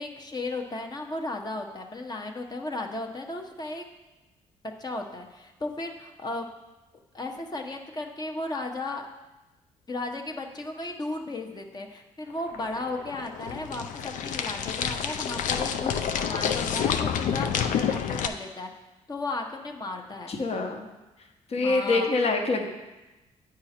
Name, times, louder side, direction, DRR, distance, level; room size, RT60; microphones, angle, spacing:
voice 1, 0.0-3.8 4.8-6.6 7.1-9.1 9.9-16.0 16.2-18.7 19.1-20.3 21.6-22.1, left 2 dB, 30° left, 3 dB, 0.9 m, -35 dB
sound 1, 12.3-18.3, left 8 dB, 75° left, 0.5 m, -29 dB
voice 2, 20.3-20.9 21.5-22.7, left 3 dB, 50° left, 3 dB, 1.2 m, -25 dB
8.5 x 5.0 x 4.3 m, 1.1 s
cardioid pair, 75°, 13 cm